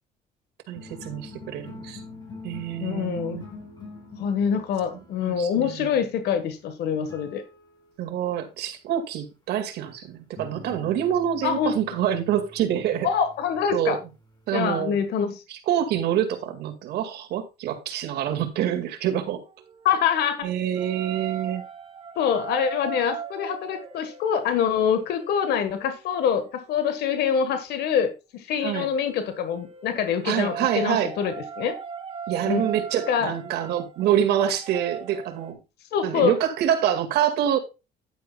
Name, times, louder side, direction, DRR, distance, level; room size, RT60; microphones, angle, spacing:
sound 1, 0.7-8.1 10.4-14.4, left 3 dB, 25° left, 5.1 m, -45 dB
voice 1, 0.7-2.0 2.4-3.4 5.2-5.9 8.0-13.1 13.7-14.0 14.5-14.9 15.5-19.4 20.4-21.6 28.6-28.9 30.2-31.1 32.3-35.6 36.0-37.6, right 10 dB, 75° right, 2.0 m, -26 dB
voice 2, 2.8-3.4 4.2-7.4 11.4-11.7 13.0-14.0 14.5-15.4 19.8-20.5 22.2-31.8 32.5-32.7 33.1-33.3 35.9-36.4, left 7 dB, 75° left, 1.5 m, -25 dB
sound 2, 19.3-27.6 28.8-35.5, right 6 dB, 35° right, 2.1 m, -39 dB
10.5 x 9.4 x 2.3 m
cardioid pair, 110°, 17 cm